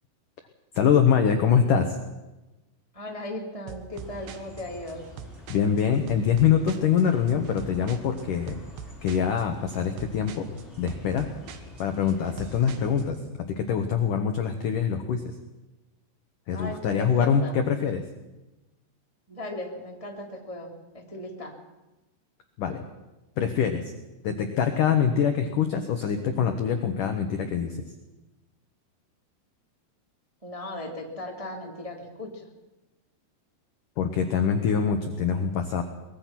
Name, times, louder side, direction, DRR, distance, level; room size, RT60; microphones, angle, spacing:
voice 1, 0.7-2.0 5.5-8.6 9.0-10.4 10.8-11.3 11.8-13.2 13.5-15.4 16.5-18.0 22.6-22.8 23.4-23.9 24.2-27.8 34.0-35.8, left 7 dB, 80° left, 5 dB, 1.9 m, -24 dB
voice 2, 2.9-5.0 16.5-17.5 19.3-21.5 30.4-32.5, left 1 dB, 15° right, 0 dB, 1.3 m, -37 dB
sound 1, 3.7-13.2, right 7 dB, 65° right, 3.0 m, -44 dB
sound 2, 3.9-13.1, left 2 dB, 15° left, 5.4 m, -47 dB
23.0 x 21.0 x 6.1 m, 1.0 s
omnidirectional pair, 5.9 m